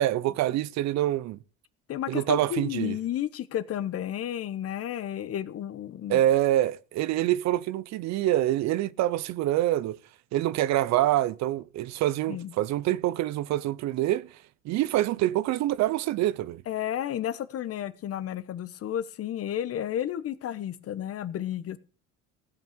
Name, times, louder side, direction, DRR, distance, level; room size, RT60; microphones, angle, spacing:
voice 1, 0.0-1.4 2.1-3.0 6.1-10.0 10.3-14.3 14.6-16.6, right 14 dB, 65° right, 0.7 m, -26 dB
voice 2, 1.9-6.2 12.3-12.5 16.7-21.8, left 11 dB, 50° left, 1.2 m, -32 dB
16.0 x 5.7 x 8.7 m
supercardioid pair, 95°, 30 cm